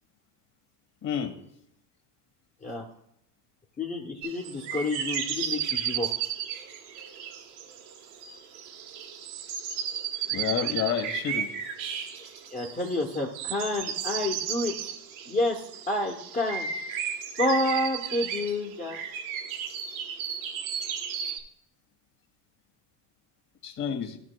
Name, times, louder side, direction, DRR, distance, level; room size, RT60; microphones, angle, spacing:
voice 1, 1.0-1.3 10.3-11.5 23.6-24.2, left 8 dB, 40° left, 5 dB, 1.5 m, -29 dB
voice 2, 3.8-6.1 12.2-14.9 15.3-15.6 15.9-16.7 17.4-19.0, left 2 dB, 15° left, -2 dB, 0.8 m, -29 dB
sound 1, 4.2-21.4, right 8 dB, 85° right, 1.3 m, -34 dB
13.5 x 6.0 x 2.2 m, 0.77 s
supercardioid pair, 120°, 50 cm